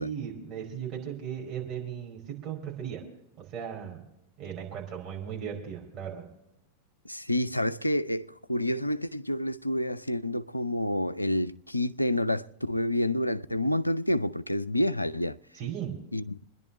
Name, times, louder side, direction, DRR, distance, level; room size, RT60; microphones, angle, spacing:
voice 1, 0.0-3.0 3.5-4.0 4.4-6.3 15.5-15.9, right 8 dB, 35° right, 4.9 m, -36 dB
voice 2, 7.1-15.4 16.1-16.4, left 1 dB, 85° left, 0.5 m, -28 dB
27.5 x 10.5 x 3.1 m
figure-of-eight pair, 90°, 0 cm